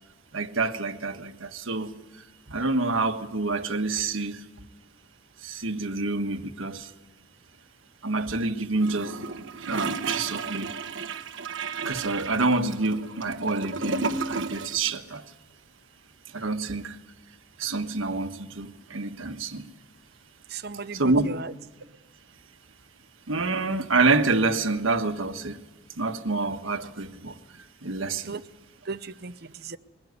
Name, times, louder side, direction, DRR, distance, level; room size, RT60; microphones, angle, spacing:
voice 1, 0.3-4.4 5.4-6.9 8.0-9.2 9.6-10.8 11.8-15.2 16.3-17.0 17.6-19.7 20.9-21.3 23.3-25.6 26.0-28.3, right 3 dB, 90° right, 1.4 m, -27 dB
Gurgling / Toilet flush, 8.8-14.9 15.1-15.2, right 4 dB, 70° right, 1.2 m, -33 dB
voice 2, 20.5-21.5 28.2-28.4 28.8-29.8, right 4 dB, 55° right, 0.8 m, -36 dB
22.0 x 16.5 x 9.5 m
head